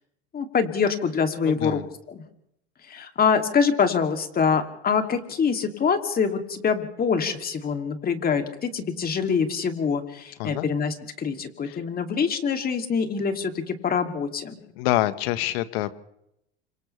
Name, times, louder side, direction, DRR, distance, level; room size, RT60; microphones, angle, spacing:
voice 1, 0.3-1.8 2.1-2.2 2.9-14.6, left 6 dB, 30° left, 5 dB, 2.9 m, -25 dB
voice 2, 1.4-1.8 10.4-10.7 11.7-11.8 14.7-15.9, left 15 dB, 70° left, 13 dB, 1.5 m, -26 dB
29.5 x 26.5 x 3.4 m, 0.77 s
hypercardioid pair, 105°, 31 cm